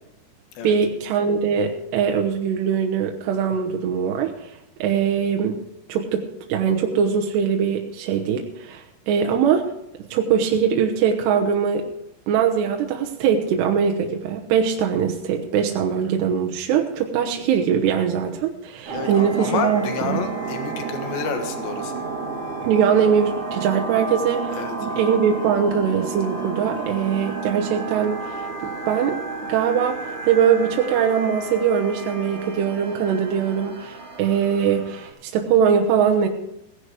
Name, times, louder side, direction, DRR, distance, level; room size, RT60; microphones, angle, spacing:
voice 1, 0.6-4.5 4.8-5.6 5.9-9.7 10.1-11.9 12.3-20.2 22.6-29.2 29.5-36.3, right 7 dB, 75° right, 2 dB, 3.0 m, -22 dB
voice 2, 18.9-22.1 24.5-24.8, left 6 dB, 80° left, 6 dB, 3.7 m, -29 dB
sound 1, 18.9-35.1, right 4 dB, 40° right, 2.6 m, -31 dB
17.5 x 11.0 x 5.0 m, 0.82 s
omnidirectional pair, 5.1 m